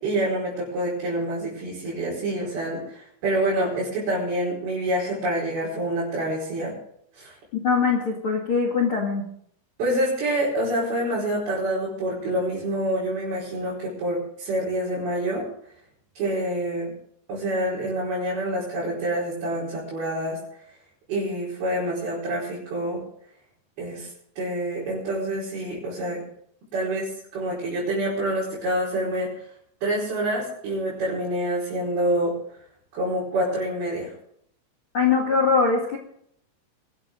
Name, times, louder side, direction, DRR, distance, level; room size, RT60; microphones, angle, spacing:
voice 1, 0.0-6.7 7.1-7.4 9.8-15.5 16.1-16.9 17.3-20.4 21.1-23.0 23.8-26.2 26.7-29.3 29.8-32.3 32.9-34.1, right 1 dB, 50° right, -6 dB, 6.6 m, -27 dB
voice 2, 7.6-9.2 34.9-36.0, left 5 dB, 45° left, 2 dB, 1.9 m, -22 dB
23.5 x 13.0 x 3.8 m, 0.68 s
omnidirectional pair, 5.7 m